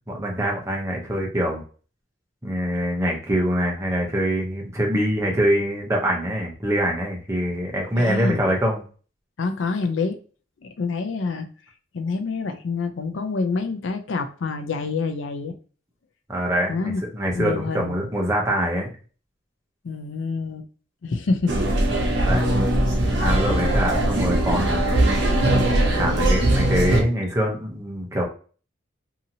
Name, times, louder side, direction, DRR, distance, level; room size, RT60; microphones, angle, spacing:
voice 1, 0.1-1.6 2.4-8.8 16.3-18.9 22.2-22.5 23.2-25.0 25.9-28.2, equal, 15° right, -1 dB, 0.7 m, -24 dB
voice 2, 8.0-8.4 9.4-10.2 10.6-11.5 11.9-15.5 16.7-17.0 17.3-18.1 19.8-20.7 21.0-21.6, left 4 dB, 65° left, 6 dB, 0.4 m, -27 dB
sound 1, 21.5-27.0, right 1 dB, 60° right, 0.8 m, -20 dB
2.8 x 2.7 x 2.7 m, 0.40 s
head